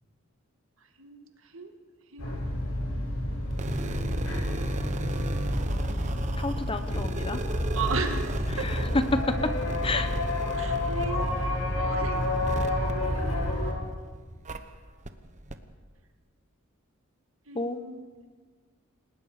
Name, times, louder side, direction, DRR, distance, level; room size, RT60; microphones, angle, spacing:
voice 1, 1.0-1.7 2.1-2.4 5.5-6.1 7.7-8.8 10.5-12.6 13.1-13.7 17.5-18.1, right 5 dB, 65° right, 5 dB, 2.0 m, -38 dB
sound 1, 2.2-13.7, left 1 dB, 85° left, 7.3 m, -29 dB
sound 2, 3.5-13.9 14.5-14.6 15.1-15.2 15.5-15.6, right 2 dB, 35° right, 1.1 m, -36 dB
voice 2, 6.4-7.4 8.6-8.8 9.8-10.1 17.5-17.8, left 3 dB, 25° left, 9 dB, 1.1 m, -32 dB
29.0 x 19.0 x 5.1 m, 1.5 s
head